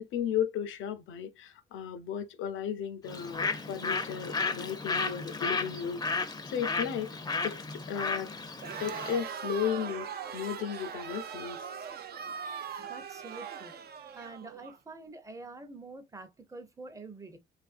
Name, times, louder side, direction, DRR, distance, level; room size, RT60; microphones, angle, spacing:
voice 1, 0.0-6.0 6.5-7.1 7.4-8.3 8.8-11.6, left 8 dB, 80° left, 0.6 m, -34 dB
Bird, 3.1-9.2, left 4 dB, 20° left, 0.5 m, -34 dB
Crowd, 8.6-14.8, right 7 dB, 50° right, 0.5 m, -40 dB
voice 2, 12.8-13.8 14.1-17.4, right 3 dB, 15° right, 0.7 m, -46 dB
3.2 x 2.5 x 2.4 m
cardioid pair, 90°, 20 cm